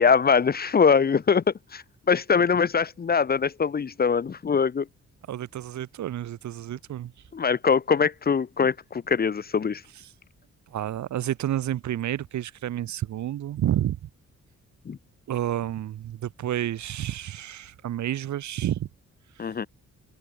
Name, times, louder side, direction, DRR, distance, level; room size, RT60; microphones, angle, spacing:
voice 1, 0.0-4.9 7.3-9.8 14.9-15.0 19.4-19.7, left 6 dB, 30° left, 0.7 m, -22 dB
voice 2, 5.3-7.1 10.7-14.1 15.3-18.9 19.4-19.5, right 12 dB, 70° right, 0.8 m, -30 dB
cardioid pair, 110°, 30 cm